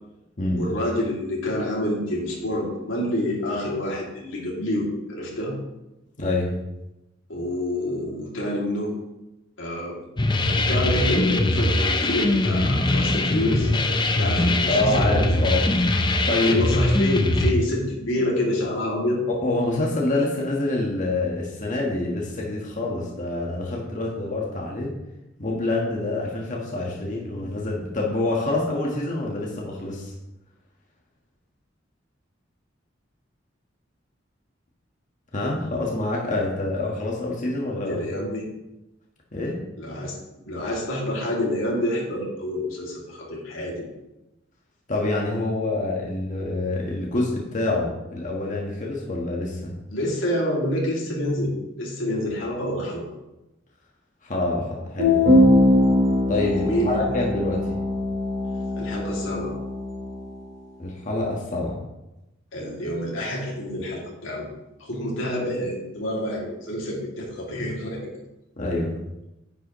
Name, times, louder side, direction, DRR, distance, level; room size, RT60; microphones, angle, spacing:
voice 1, 0.5-5.5 7.3-8.9 9.6-10.0 10.5-13.7 14.2-15.5 16.4-19.2 37.8-38.5 39.8-40.1 40.4-43.9 49.9-53.0 56.6-56.9 58.8-59.5 62.5-64.5 64.8-68.0, left 1 dB, 90° left, -3 dB, 2.7 m, -27 dB
voice 2, 6.2-6.6 14.7-15.6 16.3-16.6 19.3-24.9 25.4-30.1 35.3-38.3 39.3-39.6 44.9-49.8 54.2-55.4 56.3-57.8 60.8-61.8 68.6-68.9, left 2 dB, 40° left, -2 dB, 1.5 m, -26 dB
sound 1, 10.2-17.5, left 2 dB, 25° left, 0.7 m, -21 dB
sound 2, 55.0-60.3, left 1 dB, 85° right, 2.7 m, -21 dB
9.9 x 8.0 x 3.1 m, 0.95 s
head